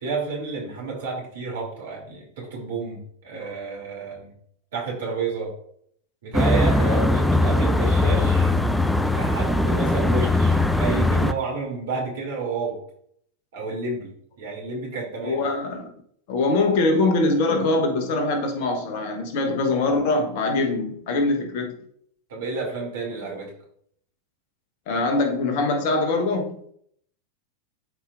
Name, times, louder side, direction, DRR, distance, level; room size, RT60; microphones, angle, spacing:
voice 1, 0.0-4.3 4.7-5.5 6.2-8.5 9.0-12.8 13.5-15.4 22.3-23.5, right 4 dB, 60° right, 2.6 m, -30 dB
sound 1, 6.3-11.3, left 2 dB, 5° left, 0.4 m, -20 dB
voice 2, 15.2-15.9 16.3-21.8 24.9-26.6, left 2 dB, 45° left, 1.1 m, -23 dB
11.5 x 4.4 x 2.5 m
figure-of-eight pair, 90°, 0 cm